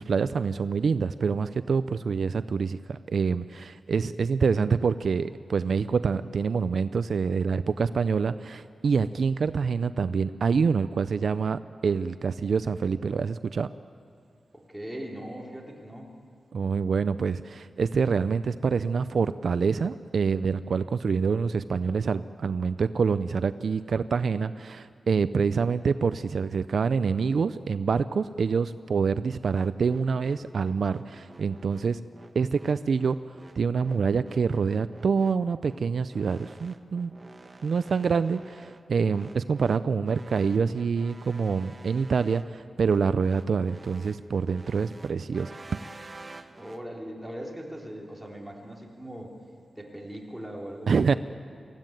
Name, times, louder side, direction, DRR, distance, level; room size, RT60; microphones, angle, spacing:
voice 1, 0.0-13.7 16.5-32.0 32.3-37.1 37.6-45.5 50.9-51.1, right 5 dB, 65° right, 13 dB, 0.4 m, -26 dB
voice 2, 14.5-16.1 46.5-49.3 49.7-51.2, equal, 5° right, -1 dB, 3.3 m, -40 dB
sound 1, 29.5-46.8, right 2 dB, 30° right, 1.0 m, -49 dB
24.0 x 15.0 x 9.1 m, 2.4 s
wide cardioid pair, 115°, 0 cm